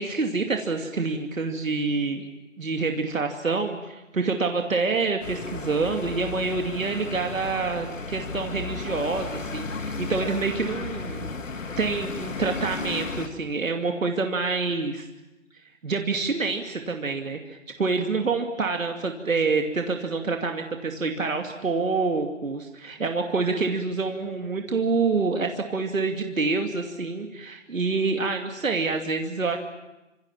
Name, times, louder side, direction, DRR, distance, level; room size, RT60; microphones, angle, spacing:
voice 1, 0.0-2.3 2.6-11.3 11.8-15.1 15.8-29.6, right 4 dB, 90° right, 3 dB, 2.6 m, -27 dB
sound 1, 5.2-13.3, left 4 dB, 75° left, 2.8 m, -34 dB
27.5 x 26.0 x 7.3 m, 1.0 s
hypercardioid pair, 175°, 39 cm